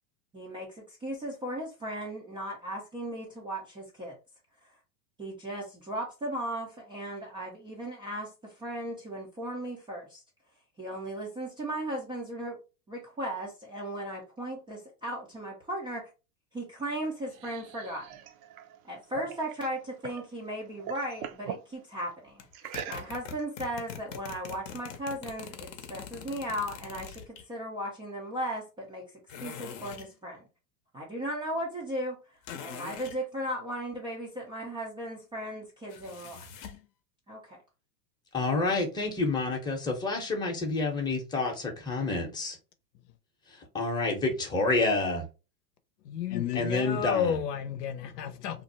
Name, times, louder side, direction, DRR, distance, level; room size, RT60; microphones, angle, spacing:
voice 1, 0.3-4.2 5.2-10.2 10.8-12.6 12.9-16.1 16.5-18.1 18.8-27.2 27.5-29.1 29.4-30.4 30.9-32.2 32.6-36.5 37.3-37.6, right 1 dB, 10° right, 0.4 m, -36 dB
sound 1, 16.9-20.3 20.6-21.7 22.5-23.4, right 9 dB, 65° right, 0.6 m, -42 dB
sound 2, 22.4-27.4 29.3-30.1 32.4-33.2 35.9-36.9, left 7 dB, 45° left, 0.7 m, -43 dB
voice 2, 38.3-42.6 43.7-45.2 46.5-47.4, left 3 dB, 10° left, 0.7 m, -28 dB
voice 3, 46.0-48.6, left 9 dB, 80° left, 0.7 m, -31 dB
2.6 x 2.1 x 3.9 m
hypercardioid pair, 120°, 48 cm